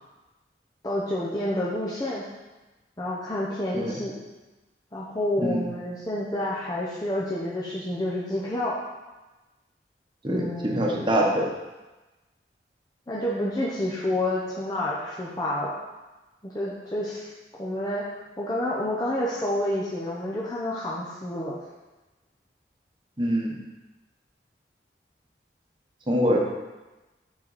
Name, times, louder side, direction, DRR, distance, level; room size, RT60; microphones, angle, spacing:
voice 1, 0.8-2.2 3.0-4.1 4.9-8.8 10.3-10.9 13.1-15.7 16.4-17.3 17.6-18.0 18.4-21.6 26.3-26.4, left 1 dB, 20° left, -6 dB, 0.8 m, -29 dB
voice 2, 10.2-11.5 23.2-23.6 26.1-26.4, equal, 25° right, -1 dB, 1.1 m, -24 dB
7.3 x 6.0 x 4.2 m, 1.1 s
head